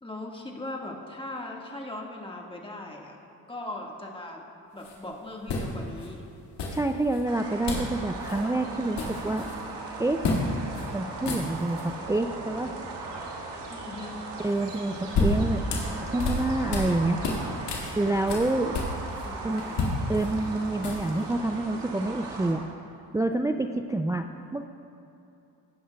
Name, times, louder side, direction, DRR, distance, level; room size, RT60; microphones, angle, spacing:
voice 1, 0.0-3.2 3.5-4.5 4.7-6.2 13.7-14.2 19.2-19.9, left 2 dB, 10° left, 0 dB, 1.7 m, -39 dB
sound 1, 4.8-4.9 5.5-6.1 6.6-7.2 7.7-7.9 8.2-8.4 8.7-9.6 10.2-10.4 10.7-10.9 11.1-11.9 14.7-16.9 17.2-19.3 19.6-21.2, left 3 dB, 70° left, 2.1 m, -30 dB
voice 2, 6.7-9.5 10.0-10.2 10.9-12.7 14.4-15.6 16.0-17.2 18.0-18.8 19.4-19.6 20.1-22.7 23.1-24.7, right 2 dB, 10° right, 7 dB, 0.3 m, -27 dB
sound 2, 7.3-22.5, right 3 dB, 70° right, 1.7 m, -38 dB
17.5 x 10.0 x 2.3 m, 2.8 s
supercardioid pair, 55°, 43 cm